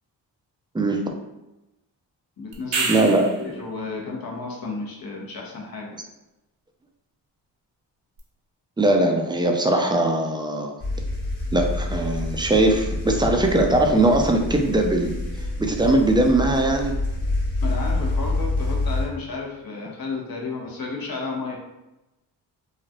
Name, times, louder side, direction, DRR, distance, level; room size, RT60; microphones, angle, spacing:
voice 1, 0.7-1.1 2.9-3.5 8.8-10.7 11.5-15.1 15.6-17.0, right 2 dB, 10° right, 3 dB, 0.4 m, -20 dB
voice 2, 2.4-3.1 3.4-5.9 17.6-21.6, left 3 dB, 55° left, -1 dB, 1.0 m, -32 dB
sound 1, 2.5-3.5 8.2-8.3, right 4 dB, 75° right, 0.8 m, -27 dB
sound 2, 10.8-19.1, left 2 dB, 30° left, 1.3 m, -27 dB
3.0 x 2.4 x 2.7 m, 0.98 s
supercardioid pair, 55°, 44 cm